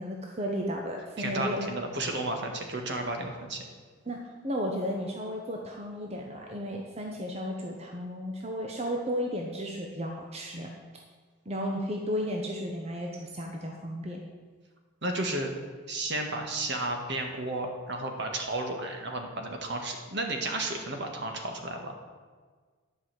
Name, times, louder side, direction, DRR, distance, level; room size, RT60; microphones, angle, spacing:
voice 1, 0.0-1.7 4.1-10.7 11.5-14.2, equal, 30° right, 0 dB, 1.0 m, -34 dB
voice 2, 1.2-3.6 15.0-15.5 15.9-21.9, right 2 dB, 60° right, 3 dB, 1.6 m, -33 dB
11.0 x 5.5 x 7.8 m, 1.5 s
head